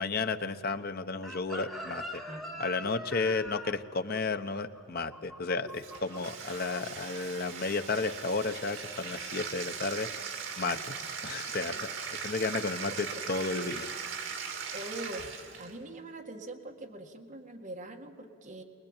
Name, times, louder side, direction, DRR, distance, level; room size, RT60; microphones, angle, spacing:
voice 1, 0.0-2.2 2.6-10.9 11.2-13.9, left 3 dB, 50° left, 9 dB, 0.9 m, -33 dB
Chicken rooster, 1.2-6.2 6.5-6.8, equal, ahead, 1.4 m, -43 dB
voice 2, 2.3-2.6 10.6-10.8 11.6-11.8 12.5-12.6 12.9-13.2 14.7-18.6, right 1 dB, 40° right, 2 dB, 1.9 m, -43 dB
Bathtub (filling or washing), 5.7-15.8, right 6 dB, 70° right, 2.3 m, -39 dB
23.5 x 20.5 x 8.9 m, 2.4 s
head